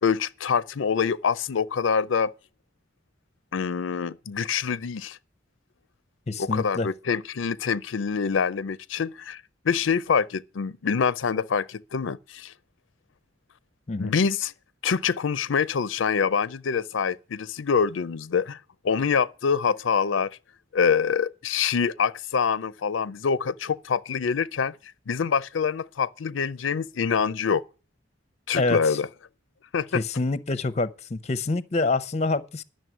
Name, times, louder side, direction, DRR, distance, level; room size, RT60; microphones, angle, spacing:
voice 1, 0.0-2.3 3.5-5.2 6.4-9.4 9.7-12.5 14.0-14.5 14.8-18.6 18.8-20.3 20.7-24.8 25.1-27.6 28.5-29.1 29.7-30.0, left 6 dB, 85° left, 0.5 m, -25 dB
voice 2, 6.3-6.9 13.9-14.1 28.5-29.0 29.9-32.6, left 3 dB, 35° left, 0.7 m, -26 dB
11.0 x 6.6 x 9.0 m
head